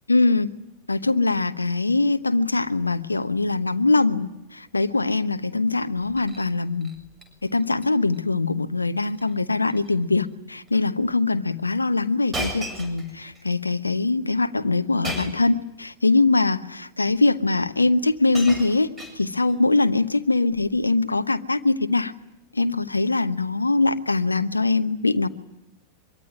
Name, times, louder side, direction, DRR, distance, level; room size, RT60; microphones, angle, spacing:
voice 1, 0.1-0.5 0.9-6.9 7.4-22.1 22.5-25.3, left 3 dB, 80° left, 10 dB, 1.1 m, -22 dB
Shatter, 6.0-6.5 6.8-7.3 7.6-7.9 8.1-8.2 9.1-9.3 9.7-9.9 10.7-10.8 12.3-13.4 15.0-15.5 16.5-16.6 17.7-17.8 18.0-19.6 20.5-20.8, right 1 dB, 15° right, 7.2 m, -35 dB
24.0 x 23.5 x 10.0 m, 0.88 s
figure-of-eight pair, 90°, 0 cm